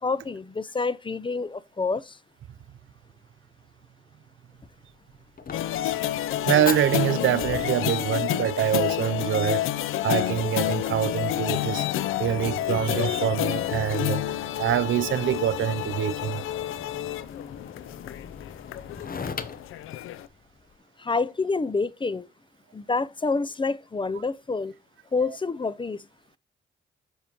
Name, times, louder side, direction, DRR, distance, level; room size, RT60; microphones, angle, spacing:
voice 1, 0.0-2.2 21.0-22.3 22.7-24.7 25.1-26.0, left 4 dB, 25° left, 0.5 m, -28 dB
Fire, 4.5-20.8, left 5 dB, 45° left, 0.9 m, -42 dB
sound 1, 5.5-20.3, left 12 dB, 85° left, 0.6 m, -29 dB
voice 2, 6.4-9.6 10.0-11.8 12.2-14.2 14.6-16.4, right 11 dB, 70° right, 0.6 m, -25 dB
7.2 x 6.9 x 2.9 m
supercardioid pair, 55°, 21 cm